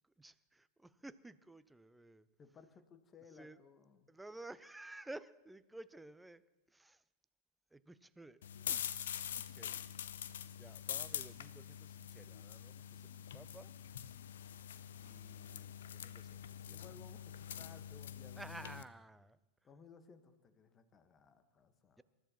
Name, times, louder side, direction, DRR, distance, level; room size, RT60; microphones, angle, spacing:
voice 1, 0.2-2.3 3.4-3.6 4.1-6.4 6.7-7.0 7.7-8.9 9.3-9.8 10.6-13.7 15.0-16.8 18.4-19.4 22.0-22.1, right 2 dB, 5° right, 15 dB, 0.5 m, -54 dB
voice 2, 2.4-4.1 16.7-18.7 19.6-22.0, left 5 dB, 25° left, 10 dB, 1.3 m, -60 dB
sound 1, 8.4-18.8, left 9 dB, 60° left, 0.6 m, -45 dB
27.0 x 13.5 x 3.0 m, 1.1 s
figure-of-eight pair, 90°, 0 cm